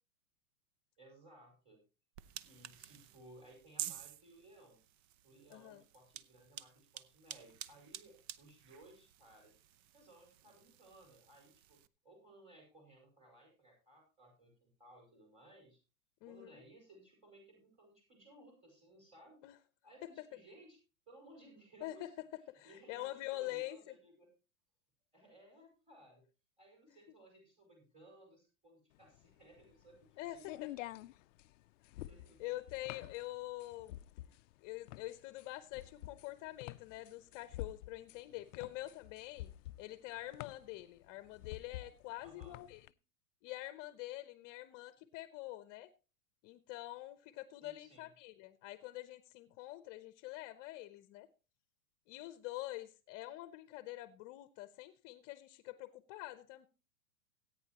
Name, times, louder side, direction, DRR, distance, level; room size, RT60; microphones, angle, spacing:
voice 1, 1.0-1.8 2.4-4.8 5.2-9.5 9.9-15.8 16.2-19.4 19.8-20.8 21.1-22.1 22.6-24.3 25.1-26.2 26.6-31.1 31.9-32.4 33.0-33.1 42.2-42.6 47.6-48.1, right 1 dB, 15° right, 4.9 m, -60 dB
sound 1, 2.2-11.9, right 12 dB, 50° right, 0.7 m, -50 dB
voice 2, 5.5-5.8 16.2-16.6 19.4-19.6 20.0-20.3 21.8-22.1 22.5-23.8 30.2-30.7 31.8-32.0 32.4-34.0 34.6-39.5 39.8-42.8 43.4-45.9 46.4-51.3 52.1-56.7, left 17 dB, 40° left, 0.8 m, -46 dB
sound 2, 29.0-42.9, left 15 dB, 65° left, 0.5 m, -49 dB
17.5 x 9.2 x 2.9 m
hypercardioid pair, 125°, 42 cm